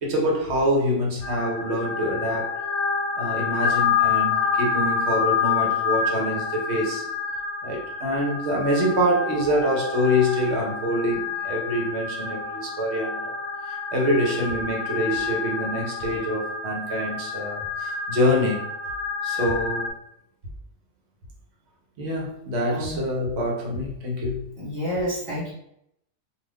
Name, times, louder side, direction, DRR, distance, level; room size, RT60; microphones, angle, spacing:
voice 1, 0.0-2.5 3.2-7.0 7.6-13.3 13.7-18.7 19.2-19.9 22.0-24.5, equal, 65° right, 1.0 m, -25 dB
sound 1, 1.2-19.9, left 6 dB, 75° left, 0.9 m, -28 dB
voice 2, 24.6-25.5, equal, 25° right, 1.1 m, -29 dB
2.4 x 2.4 x 3.3 m
omnidirectional pair, 1.2 m